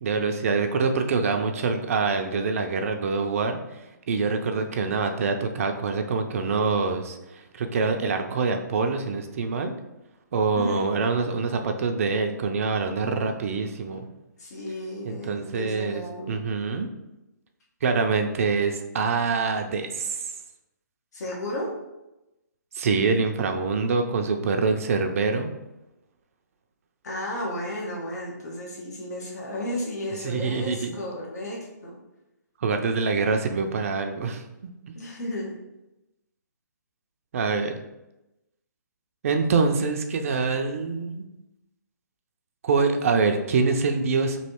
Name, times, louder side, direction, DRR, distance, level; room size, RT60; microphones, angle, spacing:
voice 1, 0.0-3.8 4.1-9.7 10.3-14.1 15.0-16.0 16.3-16.9 17.8-20.2 22.7-25.5 30.2-30.9 32.6-34.7 37.3-37.8 39.2-41.2 42.6-44.4, right 4 dB, 50° right, 5 dB, 0.5 m, -25 dB
voice 2, 10.6-11.0 14.4-16.4 21.1-21.7 27.0-31.9 34.9-35.6, left 1 dB, 65° left, -3 dB, 1.2 m, -33 dB
3.1 x 2.7 x 4.3 m, 0.95 s
hypercardioid pair, 145°, 10 cm